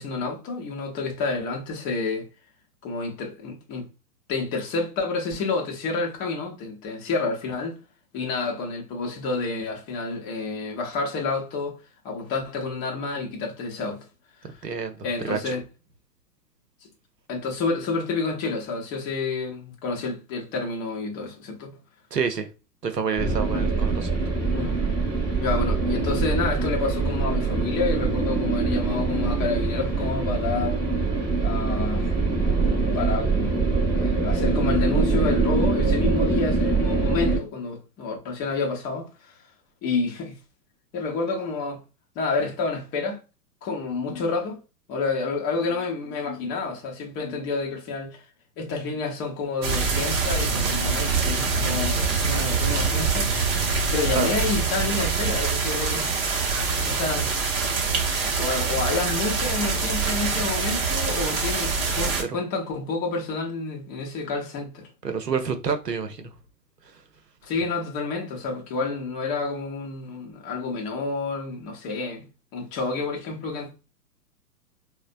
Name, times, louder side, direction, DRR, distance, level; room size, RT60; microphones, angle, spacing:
voice 1, 0.0-2.3 2.8-3.9 4.3-7.8 8.1-11.8 12.0-14.1 14.4-14.7 15.0-15.6 17.3-21.7 23.5-23.7 24.5-24.8 25.4-30.8 31.4-32.1 32.6-39.5 39.8-40.4 40.9-41.8 42.1-43.2 43.6-44.6 44.9-48.3 48.6-53.3 53.9-56.1 56.9-57.3 58.4-64.9 67.4-73.7, left 4 dB, 20° left, 0.7 m, -29 dB
voice 2, 14.4-15.6 22.1-22.5 22.8-24.1 54.2-54.3 62.2-62.4 65.0-66.3 66.8-67.0, right 6 dB, 85° right, 0.8 m, -28 dB
sound 1, 23.2-37.4, right 4 dB, 5° right, 1.0 m, -24 dB
sound 2, 49.6-62.2, right 4 dB, 40° right, 0.8 m, -25 dB
4.0 x 2.1 x 2.5 m
figure-of-eight pair, 110°, 48 cm